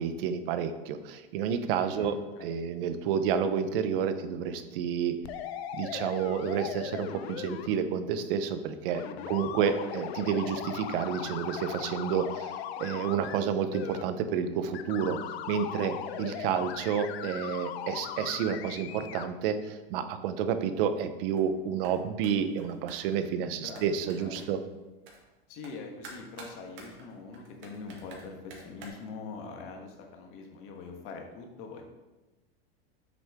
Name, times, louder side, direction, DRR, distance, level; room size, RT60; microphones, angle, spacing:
voice 1, 0.0-5.2 5.7-15.2 15.5-24.6, right 7 dB, 60° right, 10 dB, 0.8 m, -30 dB
voice 2, 1.8-2.4 9.0-9.5 23.6-23.9 24.2-24.4 25.5-31.8, left 4 dB, 45° left, 2 dB, 1.4 m, -43 dB
sound 1, 5.2-7.7 8.9-13.4 13.7-14.0 14.7-19.3, left 10 dB, 80° left, 0.7 m, -38 dB
sound 2, 21.3-21.6 21.8-22.0 22.2-23.3 23.7-24.7 25.1-25.2 25.6-25.8 26.0-28.9, right 3 dB, 40° right, 1.9 m, -49 dB
7.7 x 6.6 x 3.6 m, 1.1 s
supercardioid pair, 145°, 31 cm